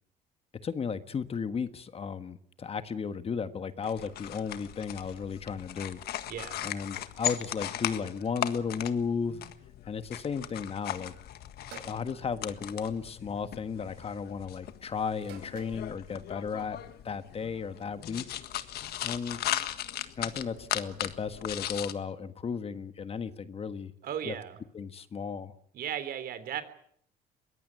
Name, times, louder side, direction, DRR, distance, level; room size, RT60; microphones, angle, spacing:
voice 1, 0.6-6.0 6.6-9.4 9.9-11.1 11.8-16.8 17.0-18.2 19.0-19.4 20.2-23.9 24.2-24.4 24.7-25.5, left 6 dB, 35° left, 11 dB, 1.5 m, -34 dB
sound 1, 3.8-21.9, left 12 dB, 70° left, 1.7 m, -38 dB
voice 2, 6.3-6.6 24.0-24.6 25.7-26.6, right 9 dB, 60° right, 13 dB, 3.3 m, -36 dB
sound 2, 11.7-12.0 13.2-13.6 15.2-15.9, right 8 dB, 80° right, 4.8 m, -49 dB
22.5 x 17.5 x 9.7 m, 0.67 s
cardioid pair, 110°, 17 cm